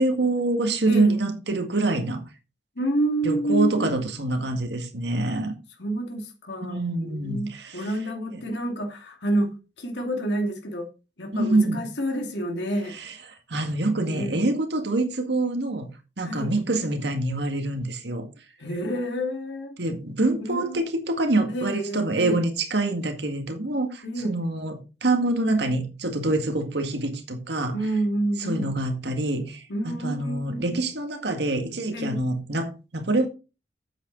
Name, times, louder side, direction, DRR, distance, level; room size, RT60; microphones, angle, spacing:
voice 1, 0.0-2.2 3.2-5.5 6.6-7.9 11.3-11.8 13.0-13.1 13.5-15.9 16.2-18.3 19.8-27.8 28.4-33.3, right 2 dB, 65° right, 2.0 m, -25 dB
voice 2, 0.8-1.2 2.8-3.9 5.2-5.4 5.8-10.9 11.2-13.0 14.0-14.4 16.2-16.5 18.6-19.8 20.5-20.8 21.5-22.4 24.0-24.4 27.7-28.8 29.7-30.8 31.9-32.2, right 1 dB, 70° left, 2.4 m, -29 dB
9.1 x 8.2 x 4.0 m
head